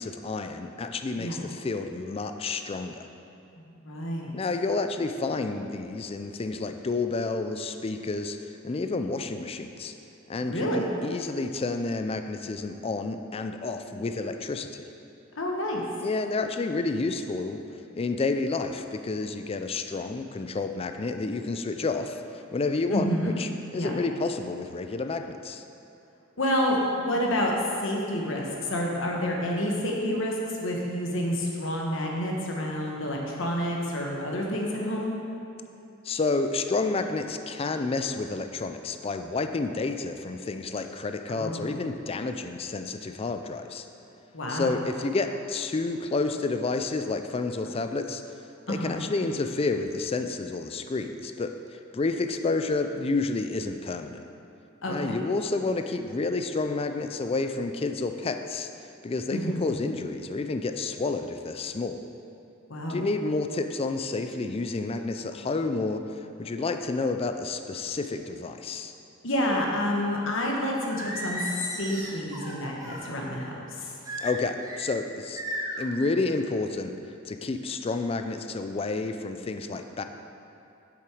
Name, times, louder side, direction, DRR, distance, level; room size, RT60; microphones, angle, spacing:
voice 1, 0.0-3.1 4.3-9.9 10.3-14.8 16.0-17.6 17.9-25.6 36.0-43.9 44.5-48.2 48.7-54.2 54.9-58.7 59.0-62.0 62.9-66.0 66.4-68.9 74.2-75.4 75.8-77.0 77.2-80.0, left 3 dB, 30° left, 7 dB, 0.4 m, -30 dB
voice 2, 3.6-4.3 10.4-10.9 15.3-15.8 22.9-23.3 23.7-23.9 26.4-27.5 27.8-35.2 41.3-41.7 44.3-44.8 48.7-49.0 54.8-55.2 59.3-59.7 62.7-63.0 69.2-74.0, equal, 65° left, -1 dB, 1.3 m, -29 dB
Singing, 70.9-73.1 74.0-74.9 75.4-75.9, right 1 dB, 15° right, 1.1 m, -35 dB
7.5 x 7.1 x 4.9 m, 2.8 s
head